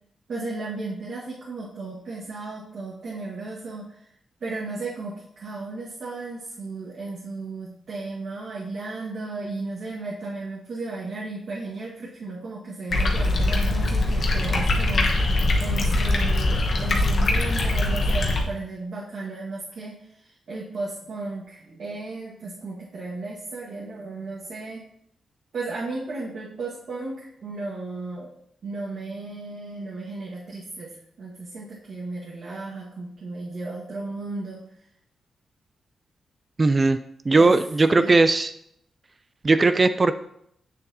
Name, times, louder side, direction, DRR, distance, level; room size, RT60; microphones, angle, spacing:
voice 1, 0.3-4.0 4.4-24.8 25.5-28.3 28.6-34.6 37.3-37.5 38.0-38.2, right 3 dB, 65° right, -5 dB, 1.6 m, -35 dB
sound 1, 12.9-18.4, left 2 dB, 60° left, 1.1 m, -22 dB
voice 2, 36.6-37.0 37.3-38.5 39.4-40.1, right 3 dB, 30° right, 11 dB, 0.4 m, -18 dB
7.7 x 6.7 x 2.8 m, 0.72 s
cardioid pair, 90°, 0 cm